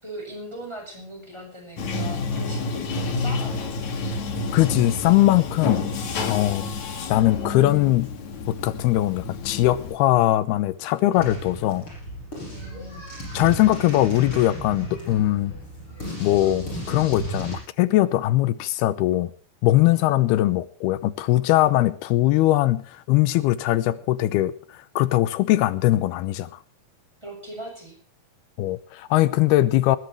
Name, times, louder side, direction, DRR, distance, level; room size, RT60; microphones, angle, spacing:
voice 1, 0.0-3.7 12.5-13.0 19.9-20.1 27.2-28.0, right 1 dB, 5° right, 6.5 m, -39 dB
Bathtub (filling or washing), 1.8-10.0, left 3 dB, 50° left, 3.3 m, -29 dB
voice 2, 4.5-5.9 6.2-6.6 7.1-8.1 8.5-11.9 13.3-15.5 16.2-19.3 19.6-24.5 25.0-26.5 28.6-30.0, left 15 dB, 85° left, 2.8 m, -21 dB
sound 1, 11.1-17.6, right 1 dB, 30° left, 8.3 m, -34 dB
20.0 x 17.5 x 3.2 m
omnidirectional pair, 4.5 m